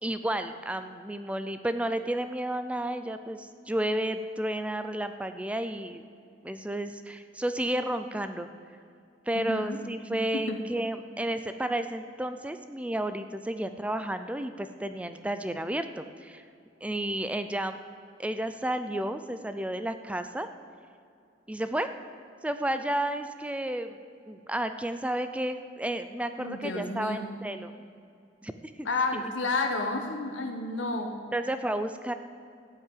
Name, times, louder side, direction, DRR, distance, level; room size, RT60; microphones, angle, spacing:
voice 1, 0.0-6.0 6.4-8.5 9.3-16.4 16.8-17.8 18.2-20.5 21.5-21.9 22.4-24.0 24.3-27.8 28.4-28.9 29.1-29.2 31.3-32.1, right 1 dB, 5° right, 9 dB, 0.4 m, -32 dB
voice 2, 9.3-9.8 10.3-10.6 26.4-27.3 28.8-31.1, left 3 dB, 85° left, 3 dB, 1.1 m, -31 dB
15.0 x 5.8 x 9.3 m, 2.4 s
head